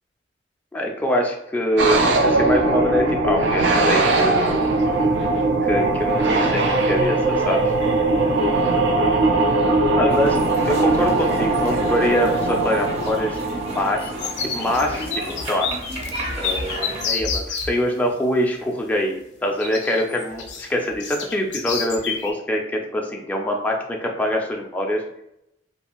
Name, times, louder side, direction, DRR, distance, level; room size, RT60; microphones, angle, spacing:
voice 1, 0.7-4.5 5.6-7.7 9.9-10.4 10.7-13.4 13.6-14.1 14.4-15.7 16.4-25.0, equal, 10° left, 0 dB, 0.3 m, -24 dB
sound 1, 1.8-14.8, right 2 dB, 80° right, 0.4 m, -20 dB
sound 2, 3.9-4.1 4.4-5.0 7.0-7.1 7.7-7.8 8.1-8.4 8.7-9.3 9.9-10.0 11.0-11.5 11.8-17.7 19.6-22.3, left 5 dB, 75° left, 0.4 m, -30 dB
sound 3, 10.1-17.1, right 1 dB, 35° right, 0.6 m, -34 dB
2.6 x 2.4 x 2.8 m, 0.81 s
head